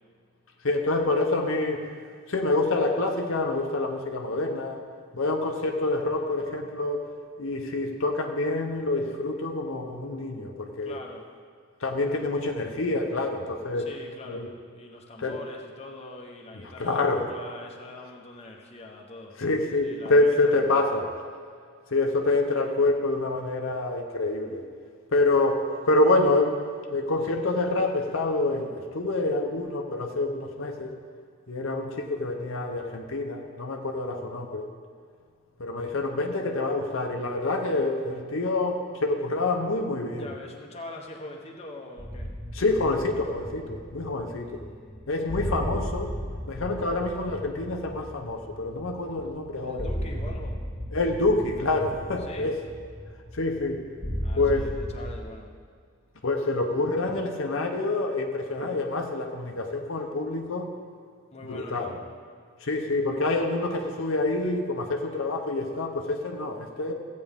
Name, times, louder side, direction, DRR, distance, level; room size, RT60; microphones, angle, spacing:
voice 1, 0.6-1.9 2.3-4.8 5.1-7.0 7.4-11.0 11.8-13.9 14.3-14.5 15.2-15.4 16.8-17.3 19.4-21.1 21.9-24.6 25.1-26.6 26.9-31.0 31.5-34.7 35.6-40.3 42.5-44.6 45.1-46.1 46.5-49.9 50.9-52.6 53.3-53.8 54.4-54.7 56.2-60.7 61.5-61.9 62.6-66.9, left 2 dB, 65° left, 3 dB, 0.8 m, -27 dB
voice 2, 10.8-11.2 13.8-19.4 19.8-20.8 40.1-42.3 44.3-45.1 49.6-50.6 52.2-52.5 54.2-55.5 61.3-62.0, left 2 dB, 30° left, 0 dB, 0.9 m, -43 dB
sound 1, 42.0-55.2, equal, 30° right, 1.9 m, -36 dB
16.0 x 8.4 x 3.6 m, 2.1 s
head